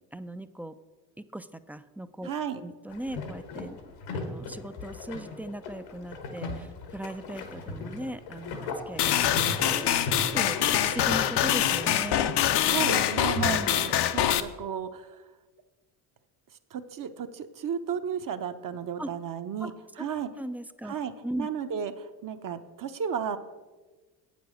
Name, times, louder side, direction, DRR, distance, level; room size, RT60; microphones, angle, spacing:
voice 1, 0.1-0.7 1.3-3.8 4.1-12.3 13.3-13.8 19.0-19.1 19.6-20.1 20.4-21.5, right 1 dB, 5° right, 11 dB, 0.4 m, -38 dB
voice 2, 2.2-2.6 12.7-15.2 16.7-19.7 20.0-20.3 20.8-21.1 21.4-23.4, right 8 dB, 45° right, 8 dB, 0.9 m, -33 dB
sound 1, 2.9-13.9, left 3 dB, 80° left, 1.5 m, -38 dB
sound 2, 9.0-14.4, left 11 dB, 60° left, 0.7 m, -25 dB
8.1 x 7.0 x 6.3 m, 1.3 s
supercardioid pair, 70°, 47 cm